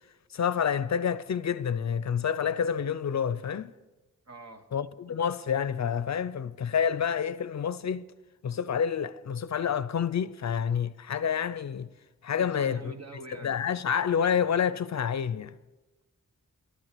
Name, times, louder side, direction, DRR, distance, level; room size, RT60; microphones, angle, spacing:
voice 1, 0.3-3.7 4.7-8.0 8.4-11.9 12.2-12.9 13.3-15.6, left 7 dB, 60° left, 0.5 m, -28 dB
voice 2, 4.3-4.6 12.4-13.6, right 3 dB, 50° right, 1.3 m, -44 dB
13.0 x 11.0 x 6.7 m
wide cardioid pair, 110°, 32 cm